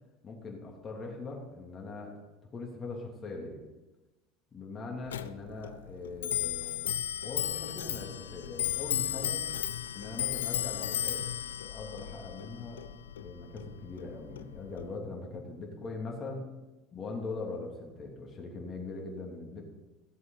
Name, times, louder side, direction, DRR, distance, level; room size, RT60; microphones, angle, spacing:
voice 1, 0.2-2.2 2.5-3.6 4.5-7.0 7.2-9.4 9.9-11.2 11.6-12.8 13.1-16.5 16.9-19.6, left 3 dB, 35° left, -1 dB, 3.0 m, -41 dB
Clock, 5.1-15.0, left 11 dB, 85° left, 0.4 m, -35 dB
15.0 x 7.8 x 4.0 m, 1.1 s
hypercardioid pair, 80°, 0 cm